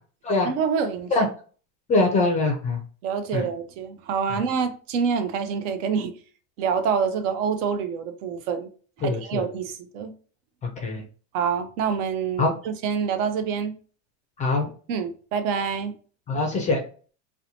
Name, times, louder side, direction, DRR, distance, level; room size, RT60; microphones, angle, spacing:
voice 1, 0.4-1.1 3.0-6.1 6.6-8.7 9.0-10.1 11.3-13.8 14.9-15.9, right 6 dB, 75° right, 0.6 m, -26 dB
voice 2, 1.9-2.8 3.3-3.4 4.3-4.4 9.0-9.5 10.8-11.0 12.4-12.5 14.4-14.7 16.3-16.8, left 3 dB, 20° left, 0.3 m, -23 dB
2.7 x 2.1 x 2.7 m
supercardioid pair, 135°, 38 cm